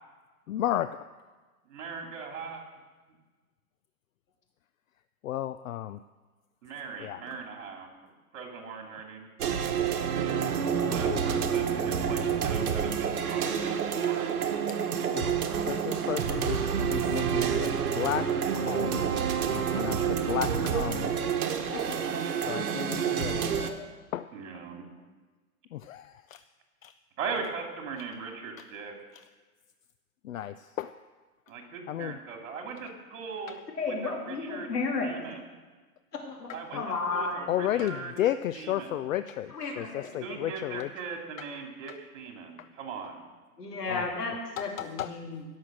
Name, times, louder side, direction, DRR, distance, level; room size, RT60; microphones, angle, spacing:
voice 1, 0.5-1.0 5.2-6.0 7.0-7.2 10.8-11.2 15.1-15.3 15.7-18.3 18.6-19.1 19.5-21.1 22.5-23.5 24.1-24.3 25.7-26.4 26.8-26.9 30.2-30.9 31.9-32.2 36.5-36.8 37.5-40.9 41.4-41.5 42.6-42.7 43.9-44.0 44.6-45.1, left 12 dB, 60° left, 12 dB, 0.5 m, -33 dB
voice 2, 1.6-2.6 6.6-7.9 8.3-9.3 10.9-14.5 15.1-15.7 24.3-24.9 27.2-28.9 31.5-33.6 33.9-34.7 35.0-35.4 36.5-36.8 37.1-38.1 38.5-39.0 40.2-43.2, right 5 dB, 50° right, 2 dB, 2.9 m, -39 dB
sound 1, 9.4-23.7, right 7 dB, 70° right, 1.5 m, -28 dB
voice 3, 23.5-23.8 33.7-35.2 36.2-37.5 39.5-40.4 43.6-45.4, left 3 dB, 85° left, 0 dB, 3.4 m, -33 dB
16.5 x 6.5 x 6.3 m, 1.3 s
hypercardioid pair, 155°, 46 cm